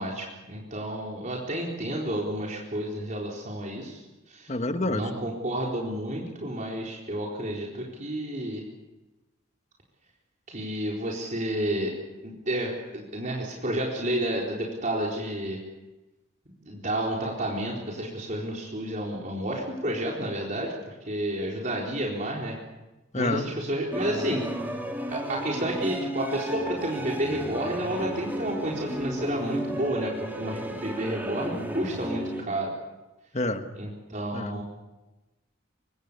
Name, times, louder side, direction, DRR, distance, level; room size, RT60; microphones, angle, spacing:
voice 1, 0.0-4.5 4.9-8.6 10.5-12.0 12.2-15.6 16.6-22.6 23.1-24.4 25.1-32.7 33.8-34.6, right 1 dB, 40° right, -2 dB, 4.2 m, -31 dB
voice 2, 4.5-5.1 23.1-23.5 33.3-33.7 34.3-34.6, left 2 dB, 35° left, 7 dB, 1.7 m, -28 dB
sound 1, 23.9-32.4, right 1 dB, 10° right, 3.3 m, -33 dB
25.5 x 24.0 x 6.9 m, 1.1 s
head